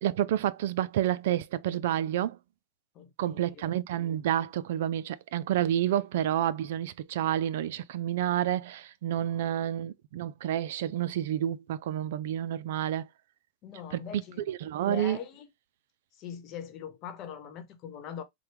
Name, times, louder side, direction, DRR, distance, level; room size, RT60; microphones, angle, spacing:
voice 1, 0.0-2.4 3.2-13.1 14.1-14.2 14.5-15.2, right 11 dB, 75° right, 0.3 m, -29 dB
voice 2, 2.9-3.7 9.2-9.5 13.6-14.4 14.8-15.5 16.1-18.2, left 8 dB, 45° left, 0.9 m, -42 dB
4.4 x 2.2 x 3.4 m
supercardioid pair, 130°, 0 cm